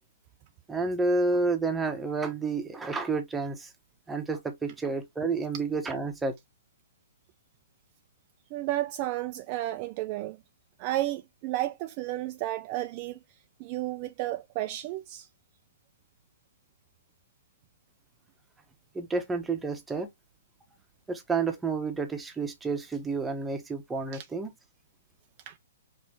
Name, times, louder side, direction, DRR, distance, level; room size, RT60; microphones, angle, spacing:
voice 1, 0.7-3.7 4.1-6.3 18.9-20.1 21.1-24.5, right 3 dB, 5° right, 0.9 m, -30 dB
voice 2, 8.5-10.4 10.8-13.2 13.6-15.3 24.1-24.2 25.5-25.6, right 15 dB, 30° right, 0.4 m, -32 dB
5.2 x 3.2 x 3.1 m
hypercardioid pair, 155°, 0 cm